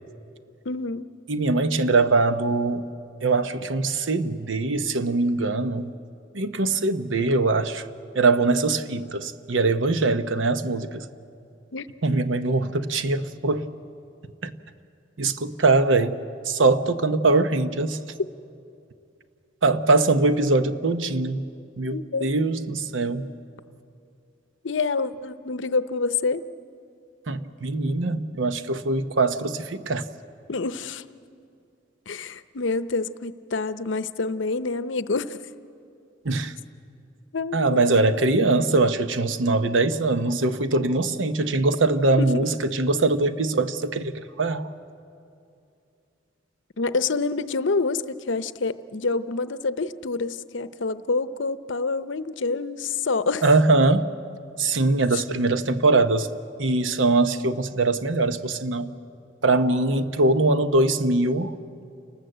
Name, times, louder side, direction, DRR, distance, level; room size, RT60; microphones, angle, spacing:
voice 1, 0.7-1.1 11.7-11.9 21.9-22.3 24.6-26.4 30.5-31.0 32.1-35.4 37.3-38.2 42.2-42.5 46.8-53.4, left 4 dB, 75° left, 0.7 m, -27 dB
voice 2, 1.3-2.9 3.2-5.9 6.3-7.9 8.1-11.1 12.0-13.7 14.4-14.6 15.2-16.2 16.4-18.0 19.6-21.5 21.8-23.3 27.3-30.0 36.2-36.5 37.5-44.7 53.4-54.1 54.6-56.3 56.6-58.9 59.4-61.6, right 3 dB, 85° right, 1.0 m, -22 dB
28.5 x 19.0 x 7.9 m
head